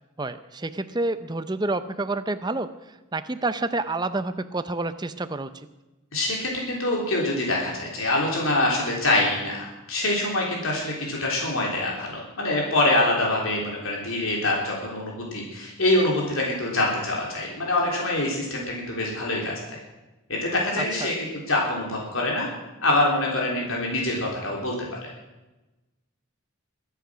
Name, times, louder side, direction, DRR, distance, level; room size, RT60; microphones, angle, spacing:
voice 1, 0.2-2.7 3.1-5.5 20.8-21.2, right 2 dB, 20° right, 11 dB, 0.6 m, -28 dB
voice 2, 6.1-19.5 20.3-22.5 22.8-25.1, left 2 dB, 70° left, -2 dB, 3.5 m, -25 dB
23.0 x 8.2 x 6.2 m, 1.1 s
head